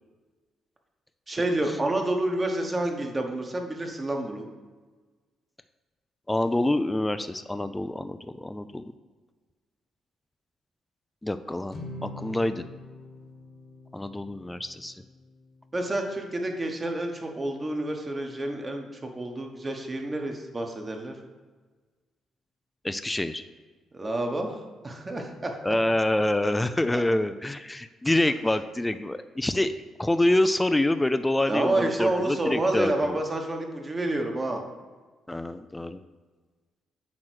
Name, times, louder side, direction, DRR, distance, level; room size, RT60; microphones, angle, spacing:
voice 1, 1.3-4.5 15.7-21.1 23.9-25.6 26.9-27.0 31.5-34.6, right 1 dB, 25° right, 3 dB, 1.2 m, -29 dB
voice 2, 6.3-8.8 11.2-11.8 12.0-12.6 13.9-14.9 22.8-23.4 25.6-29.7 30.0-33.2 35.3-36.0, left 1 dB, 10° left, 11 dB, 0.4 m, -26 dB
sound 1, 11.7-18.1, left 2 dB, 45° left, 1.3 m, -46 dB
8.6 x 3.1 x 6.3 m, 1.4 s
cardioid pair, 90°, 0 cm